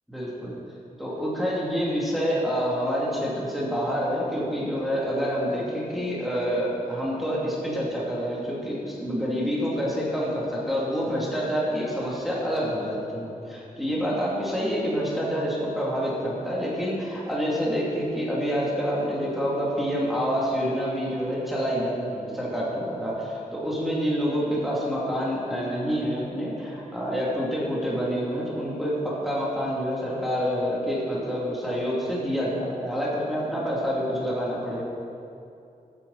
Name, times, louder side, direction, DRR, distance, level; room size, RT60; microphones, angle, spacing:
voice 1, 0.1-0.6 1.0-34.8, equal, ahead, -7 dB, 2.8 m, -27 dB
14.5 x 9.1 x 4.2 m, 2.6 s
wide cardioid pair, 115°, 15 cm